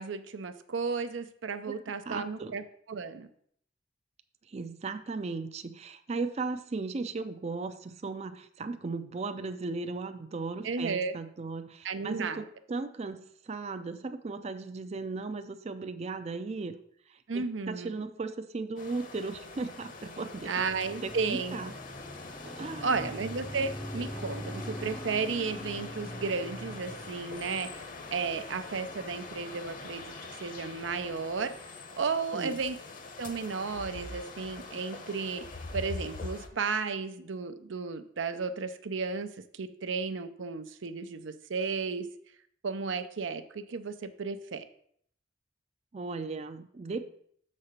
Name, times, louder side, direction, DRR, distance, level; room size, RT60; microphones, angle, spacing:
voice 1, 0.0-2.6 2.9-3.3 10.6-11.1 11.8-12.4 17.3-18.1 20.5-21.6 22.8-27.7 28.1-30.1 30.4-31.5 32.0-32.8 33.2-35.5 35.7-42.1 42.6-44.7, right 4 dB, 85° right, 10 dB, 0.6 m, -33 dB
voice 2, 2.1-2.6 4.5-16.8 17.1-20.5 21.0-21.7 22.4-23.1 32.3-32.6 45.9-47.2, right 3 dB, 35° right, 9 dB, 0.4 m, -37 dB
sound 1, 18.8-36.5, left 3 dB, 45° left, 1.0 m, -44 dB
sound 2, 20.6-31.6, equal, 10° left, 0.6 m, -44 dB
6.7 x 4.2 x 6.6 m, 0.66 s
head